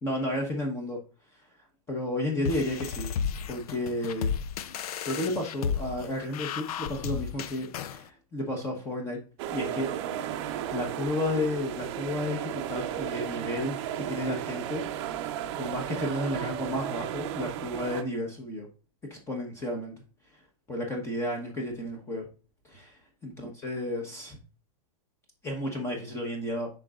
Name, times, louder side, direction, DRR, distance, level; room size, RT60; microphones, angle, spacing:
voice 1, 0.0-1.0 1.9-3.1 3.5-4.3 5.0-9.2 9.5-9.9 10.2-13.8 14.1-14.8 15.6-18.7 19.1-19.9 20.7-22.3 22.6-23.0 23.2-24.4 25.4-26.7, left 1 dB, 15° left, 1 dB, 1.1 m, -32 dB
sound 1, 2.4-8.0, left 7 dB, 75° left, 0.6 m, -33 dB
sound 2, 9.4-18.0, right 10 dB, 45° right, 0.7 m, -34 dB
10.5 x 3.9 x 2.4 m, 0.34 s
supercardioid pair, 150°, 19 cm